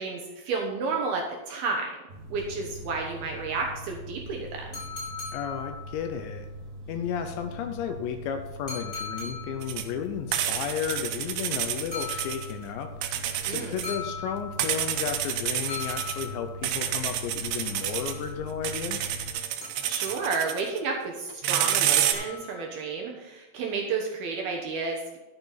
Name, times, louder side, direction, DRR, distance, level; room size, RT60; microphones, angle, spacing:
voice 1, 0.0-1.9 2.3-4.7 13.5-13.8 19.8-25.2, right 4 dB, 70° right, 0 dB, 2.5 m, -31 dB
sound 1, 2.1-19.3, equal, 55° right, 3.4 m, -42 dB
sound 2, 4.7-6.2 8.7-9.8 11.9-12.8 13.8-14.9 15.7-16.7 17.6-18.6 19.6-20.5 21.7-22.8, left 5 dB, 10° left, 4.1 m, -39 dB
voice 2, 5.3-6.5 6.9-12.9 13.4-19.1, left 8 dB, 80° left, 6 dB, 2.8 m, -33 dB
sound 3, 9.6-9.9 10.3-12.5 13.0-14.0 14.6-16.3 16.6-18.1 18.6-20.8 21.3-22.1, right 10 dB, 90° right, 3.5 m, -29 dB
11.5 x 9.0 x 4.1 m, 1.1 s
omnidirectional pair, 5.6 m